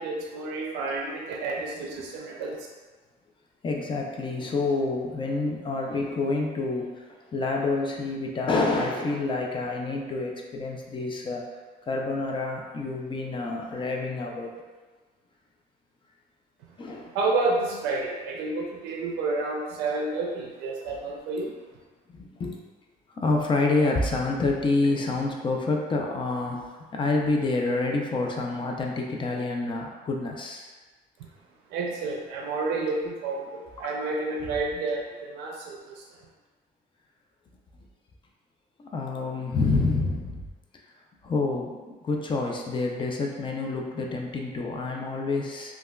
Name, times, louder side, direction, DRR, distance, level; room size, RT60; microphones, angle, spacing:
voice 1, 0.0-2.6 17.1-21.5 31.7-36.0, right 3 dB, 90° right, -1 dB, 0.4 m, -30 dB
voice 2, 3.6-11.5 11.8-14.5 16.8-17.2 21.4-21.5 22.1-22.6 23.2-26.6 26.9-30.7 33.8-34.0 38.8-40.5 41.2-45.7, left 3 dB, 30° left, 0 dB, 0.4 m, -28 dB
3.3 x 2.2 x 2.2 m, 1.3 s
cardioid pair, 110°, 17 cm